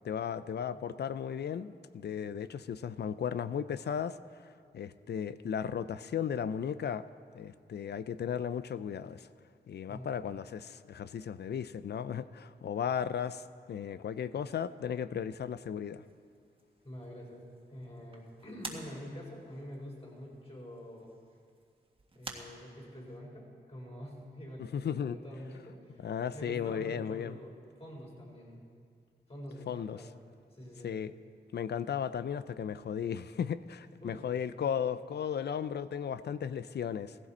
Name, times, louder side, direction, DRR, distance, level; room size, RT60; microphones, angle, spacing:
voice 1, 0.0-4.2 4.4-7.0 7.3-9.3 9.7-16.0 24.6-25.2 26.0-27.4 29.7-30.0 30.8-31.1 31.5-37.2, left 8 dB, 70° left, 14 dB, 0.5 m, -35 dB
voice 2, 9.9-10.2 16.8-21.1 22.1-26.0 26.3-28.6 29.3-30.1 30.5-30.9 34.0-34.2, equal, 35° left, -3 dB, 4.5 m, -46 dB
sound 1, 16.0-23.2, right 2 dB, 30° right, 1.7 m, -51 dB
16.0 x 15.5 x 4.3 m, 2.1 s
cardioid pair, 80°, 18 cm